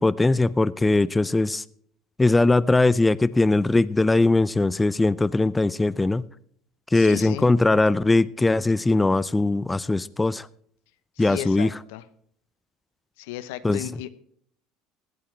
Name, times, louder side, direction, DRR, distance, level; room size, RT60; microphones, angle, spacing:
voice 1, 0.0-1.6 2.2-6.2 6.9-10.5 11.2-11.7 13.6-13.8, left 2 dB, 10° left, 17 dB, 0.4 m, -20 dB
voice 2, 6.9-7.5 11.2-12.0 13.2-14.1, left 13 dB, 85° left, 14 dB, 0.8 m, -35 dB
16.0 x 8.8 x 4.6 m, 0.65 s
supercardioid pair, 105°, 0 cm